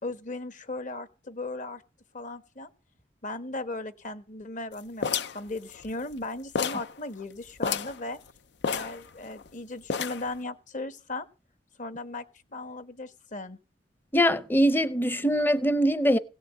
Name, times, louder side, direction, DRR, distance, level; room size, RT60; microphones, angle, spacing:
voice 1, 0.0-1.8 2.1-2.7 3.2-8.2 8.7-11.3 11.8-12.2 12.5-13.6, left 2 dB, 45° left, 1.2 m, -37 dB
sound 1, 5.0-6.2 6.6-6.9 7.2-7.3 7.6-8.0 8.6-9.5 9.9-10.4, left 6 dB, 70° left, 0.6 m, -30 dB
voice 2, 14.1-16.2, equal, 10° left, 0.7 m, -22 dB
17.0 x 5.9 x 8.2 m
head